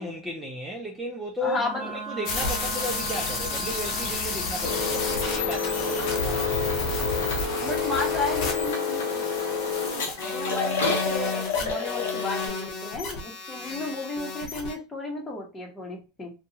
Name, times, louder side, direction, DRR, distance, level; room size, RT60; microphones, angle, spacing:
voice 1, 0.0-6.6, equal, 10° right, 0.6 m, -34 dB
voice 2, 1.4-1.8 7.6-9.3 10.2-16.3, left 3 dB, 20° left, 1.1 m, -33 dB
Wind instrument woodwind instrument, 1.5-6.3, right 5 dB, 55° right, 0.9 m, -38 dB
sound 1, 2.2-14.7, left 4 dB, 60° left, 0.9 m, -32 dB
sound 2, 4.6-12.5, left 4 dB, 85° left, 0.9 m, -29 dB
2.6 x 2.3 x 2.8 m
supercardioid pair, 110°, 0 cm